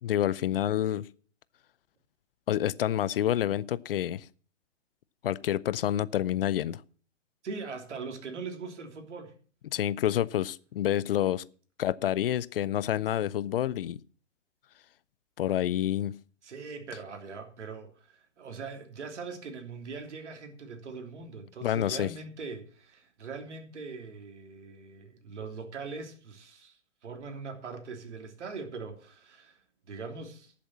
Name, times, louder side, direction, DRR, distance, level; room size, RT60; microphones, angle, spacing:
voice 1, 0.0-1.1 2.5-4.2 5.2-6.8 9.7-11.4 11.8-14.0 15.4-16.2 21.6-22.1, left 11 dB, 50° left, 0.6 m, -28 dB
voice 2, 7.4-9.3 16.4-30.5, right 4 dB, 65° right, 3.2 m, -41 dB
11.5 x 7.3 x 7.3 m
hypercardioid pair, 130°, 37 cm